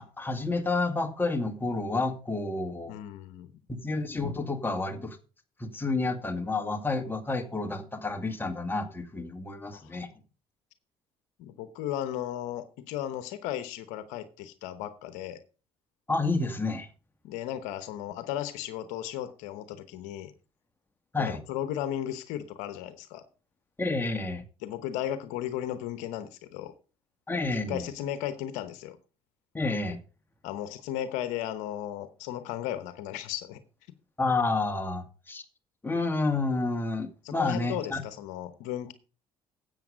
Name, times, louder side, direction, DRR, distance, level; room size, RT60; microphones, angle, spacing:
voice 1, 0.0-2.9 3.7-5.2 5.6-10.1 16.1-16.9 21.1-21.4 23.8-24.4 27.3-27.9 29.5-30.0 34.2-35.4 35.8-38.0, left 3 dB, 15° left, 2.2 m, -30 dB
voice 2, 2.9-3.5 9.7-10.0 11.4-15.4 17.2-20.3 21.2-23.2 24.6-26.7 27.7-29.0 30.4-33.6 37.2-38.9, left 11 dB, 80° left, 1.0 m, -35 dB
10.5 x 8.2 x 5.1 m
supercardioid pair, 70°, 12 cm